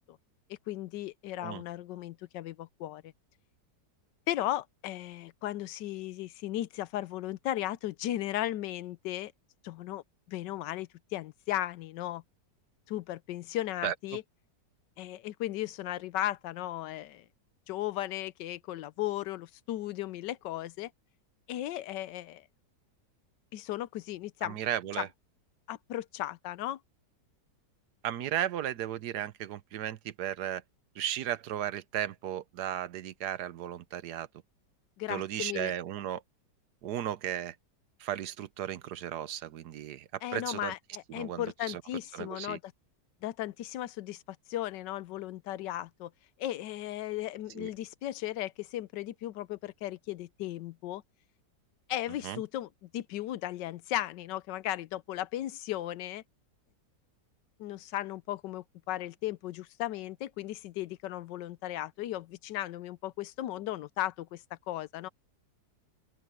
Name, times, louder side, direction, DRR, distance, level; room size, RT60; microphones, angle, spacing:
voice 1, 0.7-3.1 4.3-9.3 9.6-10.0 10.3-12.2 12.9-14.2 15.0-17.2 17.7-20.9 21.5-22.4 23.5-24.6 24.9-25.0 25.7-26.8 35.0-35.7 40.2-42.6 43.2-44.2 44.5-46.1 46.4-51.0 51.9-56.2 57.6-65.1, left 14 dB, 85° left, 1.3 m, -36 dB
voice 2, 24.4-25.1 28.0-30.6 31.0-34.3 35.1-36.2 36.8-37.5 38.0-40.7 41.1-41.8 42.1-42.6 47.5-47.7 52.2-52.4, right 11 dB, 70° right, 1.3 m, -35 dB
open air
omnidirectional pair, 1.9 m